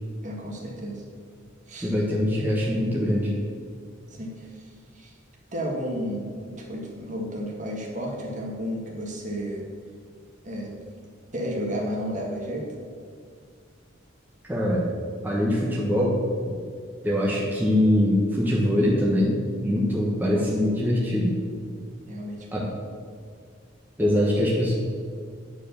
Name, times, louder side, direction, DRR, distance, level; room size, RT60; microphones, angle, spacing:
voice 1, 0.2-1.0 1.7-1.9 2.4-2.5 4.1-5.1 5.5-9.6 10.4-10.7 11.3-12.7 20.3-20.5 22.1-22.5 24.2-24.3, equal, 40° right, -1 dB, 1.7 m, -32 dB
voice 2, 1.8-3.3 14.5-14.9 15.2-16.5 17.0-19.4 19.6-21.4 22.5-22.7 24.0-24.7, left 1 dB, 10° right, -5 dB, 1.2 m, -23 dB
9.9 x 4.7 x 6.9 m, 2.1 s
head